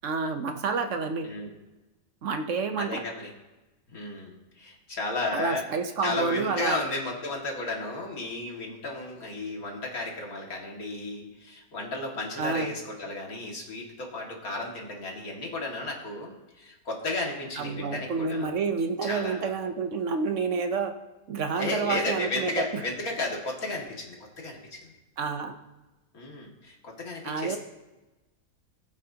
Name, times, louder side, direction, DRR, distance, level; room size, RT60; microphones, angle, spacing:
voice 1, 0.0-1.3 2.2-3.0 5.3-6.8 12.4-12.7 17.6-20.9 21.3-22.6 25.2-25.5 27.2-27.6, right 4 dB, 60° right, 6 dB, 1.1 m, -29 dB
voice 2, 1.2-1.5 2.8-3.3 3.9-5.7 6.0-18.5 19.0-19.5 21.6-24.9 26.1-27.6, left 2 dB, 75° left, -1 dB, 2.5 m, -33 dB
19.5 x 8.7 x 2.8 m, 1.1 s
omnidirectional pair, 1.5 m